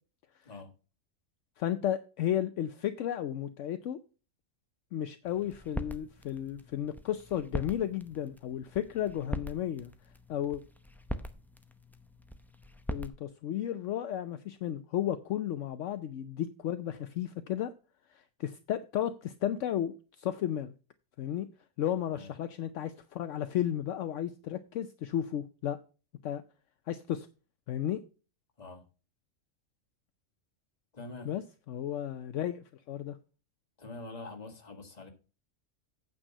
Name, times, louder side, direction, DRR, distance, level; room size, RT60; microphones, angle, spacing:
voice 1, 1.6-4.0 4.9-9.9 10.3-10.6 12.9-17.7 18.1-20.7 21.2-21.5 21.8-25.8 26.2-26.4 26.9-27.3 27.7-28.0 31.2-31.4 31.7-33.2, left 11 dB, 70° left, 0.9 m, -33 dB
sound 1, 5.3-13.1, equal, ahead, 0.5 m, -42 dB
voice 2, 30.9-31.3 33.8-35.1, left 3 dB, 30° left, 1.6 m, -45 dB
8.9 x 6.0 x 5.5 m
omnidirectional pair, 1.4 m